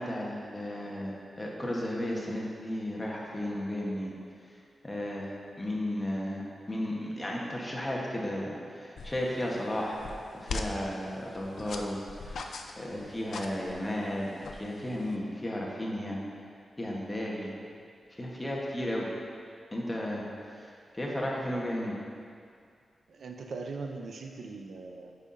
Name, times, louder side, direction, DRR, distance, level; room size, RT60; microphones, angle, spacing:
voice 1, 0.0-4.1 4.8-5.3 5.6-10.1 10.5-12.0 12.3-12.4 12.8-16.2 16.8-17.5 18.2-19.1 19.7-20.3 20.9-21.9, left 1 dB, 15° left, -3 dB, 1.0 m, -34 dB
sound 1, 9.0-15.2, left 3 dB, 75° left, 0.4 m, -42 dB
voice 2, 23.1-25.1, right 3 dB, 65° right, 3 dB, 0.4 m, -40 dB
9.8 x 5.5 x 2.6 m, 2.3 s
wide cardioid pair, 135°, 0 cm